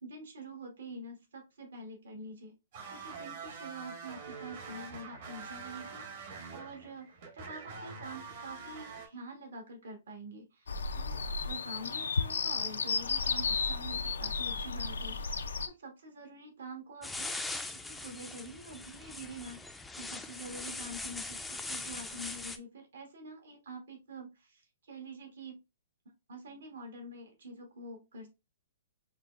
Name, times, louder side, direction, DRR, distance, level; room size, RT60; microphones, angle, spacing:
voice 1, 0.0-2.6 2.9-15.4 15.7-17.6 17.8-19.6 20.0-25.6 26.3-28.3, right 1 dB, 80° right, 2 dB, 1.3 m, -46 dB
sound 1, 2.7-9.1, right 5 dB, 55° right, 1.1 m, -45 dB
sound 2, 10.7-15.7, left 4 dB, 85° left, 0.4 m, -33 dB
sound 3, 17.0-22.6, left 2 dB, 5° left, 0.3 m, -41 dB
5.4 x 2.2 x 2.4 m, 0.25 s
hypercardioid pair, 140°, 0 cm